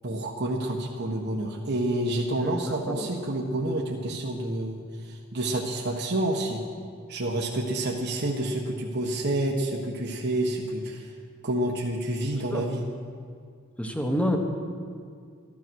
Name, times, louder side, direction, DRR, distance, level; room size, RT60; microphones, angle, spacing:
voice 1, 0.0-4.8 5.1-6.6 7.1-11.1 11.4-12.9, right 1 dB, 50° right, -1 dB, 1.2 m, -28 dB
voice 2, 2.4-3.1 12.5-12.6 13.8-14.4, equal, 5° left, 3 dB, 1.2 m, -28 dB
14.0 x 12.0 x 6.2 m, 2.2 s
head